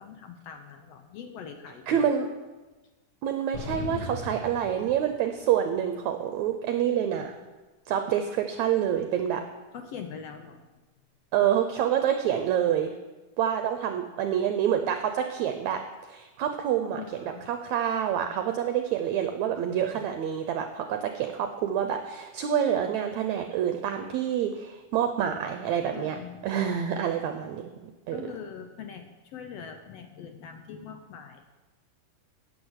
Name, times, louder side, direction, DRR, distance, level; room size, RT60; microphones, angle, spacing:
voice 1, 0.0-2.1 9.7-10.7 16.9-17.5 25.9-26.4 28.1-31.4, left 7 dB, 70° left, 6 dB, 1.5 m, -42 dB
voice 2, 1.9-2.3 3.2-7.4 7.9-9.4 11.3-12.9 13.4-15.8 16.1-17.0 17.5-27.7 28.1-28.3, right 9 dB, 75° right, 6 dB, 1.8 m, -27 dB
sound 1, 3.5-5.5, left 2 dB, 40° left, 1.6 m, -37 dB
10.0 x 8.5 x 8.1 m, 1.2 s
omnidirectional pair, 3.8 m